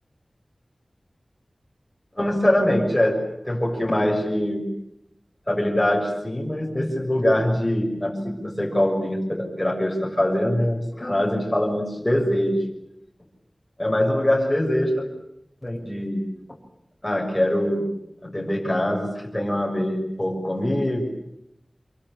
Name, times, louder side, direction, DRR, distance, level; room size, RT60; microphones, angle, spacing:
voice 1, 2.2-3.2 3.4-4.7 5.5-12.6 13.8-15.1 15.6-16.3 17.0-17.9 18.2-21.0, left 1 dB, 20° left, -1 dB, 6.6 m, -23 dB
26.5 x 24.0 x 8.7 m, 0.81 s
wide cardioid pair, 70°, 0 cm